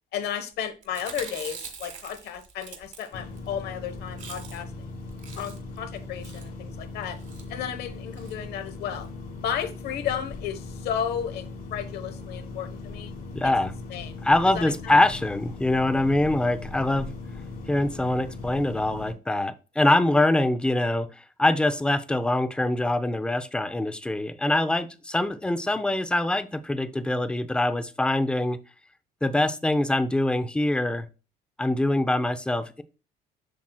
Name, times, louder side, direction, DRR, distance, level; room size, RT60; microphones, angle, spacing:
voice 1, 0.1-4.9 5.4-7.2 7.5-9.1 9.4-13.1 13.6-14.2 14.5-14.9, left 9 dB, 75° left, 1.0 m, -33 dB
Chewing mastication, 0.8-3.5 3.8-3.9 4.1-4.8 5.1-5.8 6.2-6.5 7.2-7.5 8.1-8.4 8.7-8.8 9.0-9.1, right 6 dB, 45° right, 1.5 m, -42 dB
sound 1, 3.1-19.1, left 3 dB, 55° left, 2.0 m, -39 dB
voice 2, 13.3-13.7 14.2-17.1 17.7-21.1 21.4-28.6 29.2-31.1 31.6-32.8, left 1 dB, 5° left, 0.5 m, -24 dB
7.3 x 5.9 x 2.2 m
cardioid pair, 110°, 17 cm